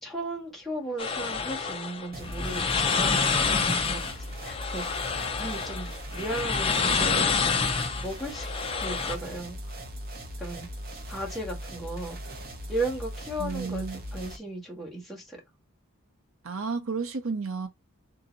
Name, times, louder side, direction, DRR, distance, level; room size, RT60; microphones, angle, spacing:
voice 1, 0.0-3.2 3.8-4.0 4.4-4.8 5.4-7.4 7.9-9.6 10.4-10.7 11.1-12.2 12.7-15.4, right 1 dB, ahead, 1.7 m, -35 dB
sound 1, 1.0-9.2, left 5 dB, 25° left, 0.5 m, -28 dB
sound 2, 2.1-14.4, equal, 45° right, 1.0 m, -39 dB
voice 2, 13.4-14.0 16.4-17.7, right 4 dB, 70° right, 0.7 m, -32 dB
3.9 x 2.8 x 3.9 m
head